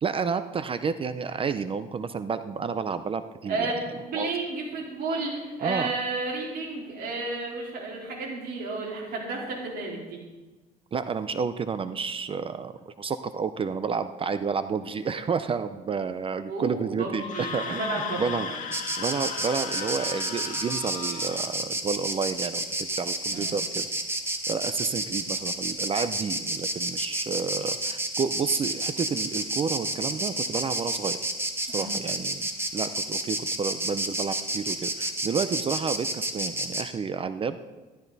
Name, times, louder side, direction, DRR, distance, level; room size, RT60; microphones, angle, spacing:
voice 1, 0.0-3.7 4.1-4.3 5.6-5.9 10.9-18.5 19.0-23.9 24.5-31.2 31.7-37.6, right 5 dB, 30° right, 12 dB, 0.5 m, -30 dB
voice 2, 3.5-10.2 16.5-18.5 23.3-23.5 31.7-31.9, right 3 dB, 65° right, -3 dB, 3.9 m, -32 dB
Screaming, 17.1-21.5, left 6 dB, 50° left, 1.6 m, -36 dB
Insect, 18.7-36.9, right 1 dB, 15° right, 1.3 m, -30 dB
13.5 x 12.5 x 4.0 m, 1.2 s
cardioid pair, 110°, 17 cm